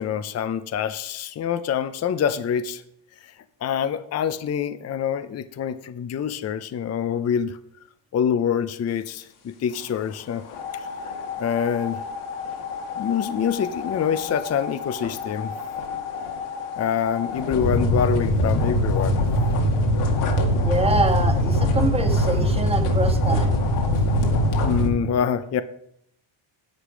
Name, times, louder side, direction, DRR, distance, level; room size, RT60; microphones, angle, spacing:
voice 1, 0.0-2.8 3.6-7.6 8.1-10.4 10.7-10.9 11.4-12.0 13.0-15.5 16.8-19.2 24.6-25.6, left 8 dB, 30° left, 12 dB, 0.6 m, -25 dB
sound 1, 10.5-24.9, left 1 dB, 75° left, 2.1 m, -24 dB
voice 2, 20.6-23.6, right 2 dB, 10° right, 4 dB, 1.6 m, -25 dB
10.0 x 8.0 x 5.0 m, 0.72 s
cardioid pair, 100°, 49 cm